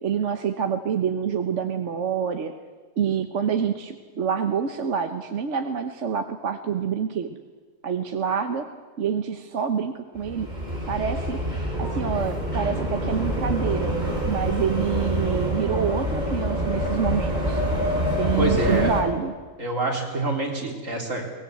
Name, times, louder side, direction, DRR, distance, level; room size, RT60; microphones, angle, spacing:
voice 1, 0.0-2.5 3.0-7.4 7.8-8.6 9.0-10.5 10.8-11.4 11.8-13.9 14.3-17.6 18.2-19.3, right 7 dB, 70° right, 7 dB, 1.4 m, -27 dB
sound 1, 10.2-19.0, equal, 35° right, 4.3 m, -26 dB
voice 2, 18.4-18.9 19.6-21.4, right 1 dB, 85° right, 1 dB, 3.9 m, -26 dB
23.0 x 19.0 x 8.0 m, 1.5 s
omnidirectional pair, 1.3 m